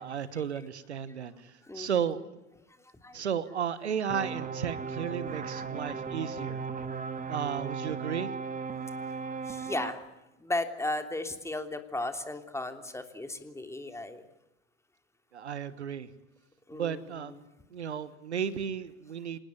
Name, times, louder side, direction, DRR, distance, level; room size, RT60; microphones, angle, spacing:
voice 1, 0.0-2.2 3.1-6.6 7.3-8.3 15.3-16.1 16.7-17.4 17.7-19.4, right 8 dB, 80° right, 16 dB, 1.3 m, -34 dB
voice 2, 2.8-3.2 9.1-10.0 10.4-14.2 16.7-17.2, left 2 dB, 10° left, 7 dB, 3.2 m, -36 dB
sound 1, 4.1-9.9, right 5 dB, 25° right, 2.4 m, -36 dB
26.5 x 19.5 x 9.6 m, 0.94 s
figure-of-eight pair, 70°, 33 cm